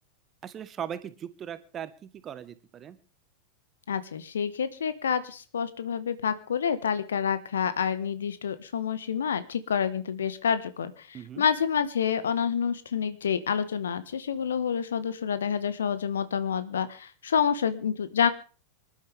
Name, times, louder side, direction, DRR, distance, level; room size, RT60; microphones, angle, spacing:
voice 1, 0.4-3.0 11.1-11.5, right 9 dB, 25° right, 13 dB, 1.4 m, -39 dB
voice 2, 3.9-18.3, left 7 dB, 65° left, 13 dB, 1.5 m, -28 dB
25.5 x 11.5 x 3.6 m, 0.38 s
figure-of-eight pair, 90°, 0 cm